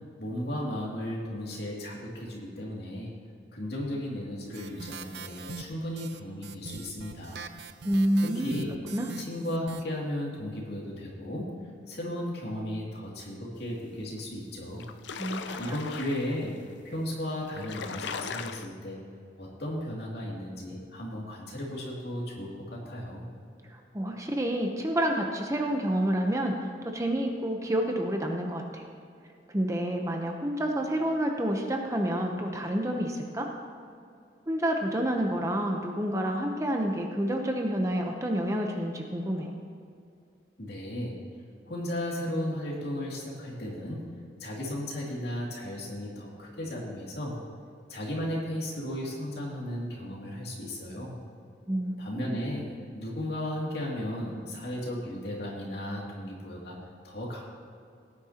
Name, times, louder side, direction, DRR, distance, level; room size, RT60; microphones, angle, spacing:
voice 1, 0.2-3.1 3.5-7.4 8.2-8.7 9.2-11.5 11.9-14.8 15.6-16.5 16.8-19.0 19.4-23.3 40.6-41.2 41.7-44.0 44.4-47.4 47.9-51.1 52.0-52.7 52.9-56.8 57.0-57.4, left 1 dB, 65° left, -3 dB, 2.6 m, -35 dB
sound 1, 4.5-9.8, right 5 dB, 65° right, 0.5 m, -43 dB
voice 2, 7.8-8.5 8.9-9.1 15.2-15.8 23.7-26.5 26.8-28.8 29.5-33.5 34.5-39.6 51.7-52.4, right 1 dB, 15° right, 2 dB, 0.8 m, -29 dB
sound 2, 14.2-14.3 14.6-16.4 17.1-17.2 17.4-18.7, left 5 dB, 80° left, 0.5 m, -38 dB
17.5 x 9.6 x 2.9 m, 2.4 s
head